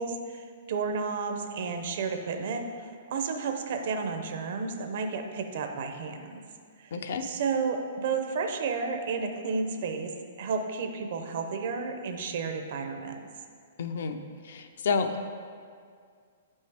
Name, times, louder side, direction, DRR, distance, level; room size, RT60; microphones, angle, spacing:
voice 1, 0.0-2.7 3.1-6.4 6.8-6.9 7.2-10.1 10.4-13.2, right 5 dB, 50° right, 5 dB, 0.6 m, -32 dB
voice 2, 6.9-7.2 13.8-14.2 14.5-15.2, left 5 dB, 60° left, 7 dB, 0.5 m, -29 dB
7.6 x 5.3 x 3.4 m, 2.1 s
hypercardioid pair, 170°, 0 cm